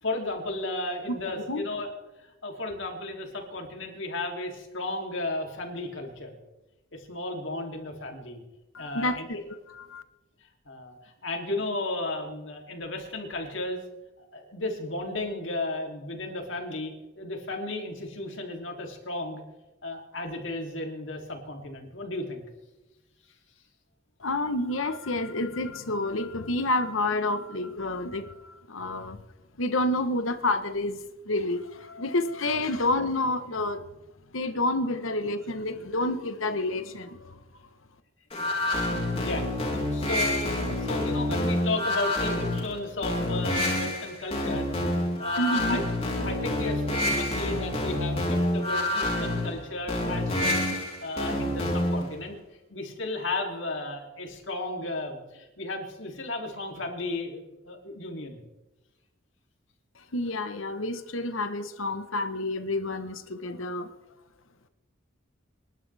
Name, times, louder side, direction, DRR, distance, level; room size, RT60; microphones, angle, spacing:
voice 1, 0.0-1.9 2.4-6.4 6.9-8.4 8.8-9.3 10.6-13.8 14.2-19.4 19.8-22.4 32.6-32.7 38.5-38.6 39.1-44.7 45.2-45.8 46.2-50.6 51.0-52.4 52.7-58.4, left 2 dB, 70° left, 3.2 m, -34 dB
voice 2, 8.7-9.4 9.7-10.0 24.2-29.2 29.6-31.0 31.3-33.8 34.3-37.3 45.4-45.8 60.1-63.9, left 2 dB, 90° left, 1.3 m, -29 dB
sound 1, 38.3-52.1, left 1 dB, 30° left, 3.9 m, -28 dB
26.5 x 11.5 x 3.6 m
head